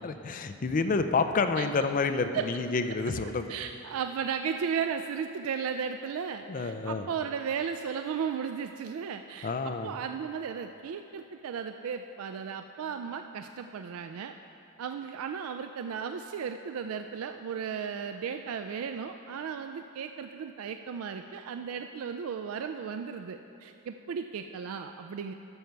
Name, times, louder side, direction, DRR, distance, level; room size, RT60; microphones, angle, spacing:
voice 1, 0.0-3.5 6.5-7.1 9.4-9.9, left 4 dB, 40° left, 8 dB, 0.4 m, -29 dB
voice 2, 3.5-14.3 14.8-25.3, right 7 dB, 80° right, 7 dB, 0.3 m, -35 dB
12.5 x 6.7 x 4.6 m, 2.8 s
head